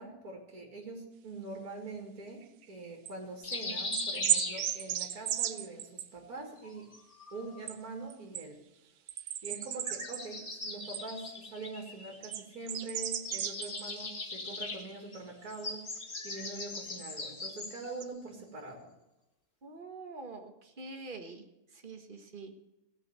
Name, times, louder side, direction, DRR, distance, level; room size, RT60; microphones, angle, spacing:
voice 1, 0.0-6.9 7.3-8.6 9.4-15.8 16.2-18.9, right 3 dB, 65° right, 1 dB, 2.7 m, -44 dB
sound 1, 2.4-3.1 3.5-3.6 3.9-6.1 7.7-7.8 8.1-8.4 9.1-11.0 12.2-14.0 14.3-14.8 16.5-16.6 18.0-18.1, right 11 dB, 80° right, 1.3 m, -35 dB
sound 2, 3.4-5.2 6.6-7.6 9.6-12.6 12.8-18.0, left 3 dB, 35° left, 1.6 m, -41 dB
voice 2, 19.6-21.4 21.7-22.5, right 3 dB, 35° right, 5 dB, 1.6 m, -45 dB
16.5 x 6.5 x 8.1 m, 0.97 s
omnidirectional pair, 1.7 m